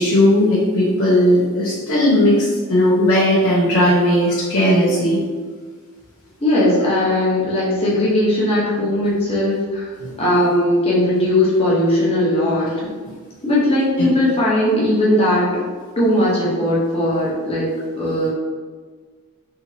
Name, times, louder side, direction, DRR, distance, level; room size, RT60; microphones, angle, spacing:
voice 1, 0.0-5.2 10.0-10.2, left 1 dB, 80° left, -8 dB, 0.8 m, -16 dB
voice 2, 6.4-9.9 10.2-12.7 13.4-15.6 16.0-18.3, left 1 dB, 25° left, -7 dB, 0.9 m, -18 dB
3.5 x 2.9 x 2.7 m, 1.5 s
head